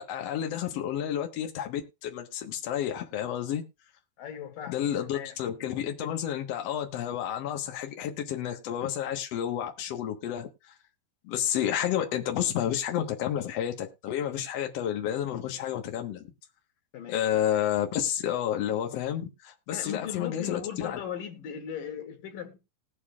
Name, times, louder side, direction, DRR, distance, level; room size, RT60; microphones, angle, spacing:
voice 1, 0.0-3.6 4.7-10.5 11.2-16.3 17.1-21.0, left 10 dB, 90° left, 1.4 m, -30 dB
voice 2, 4.2-5.4 16.9-17.3 19.7-22.6, left 8 dB, 65° left, 2.7 m, -38 dB
20.0 x 6.7 x 2.4 m
omnidirectional pair, 4.9 m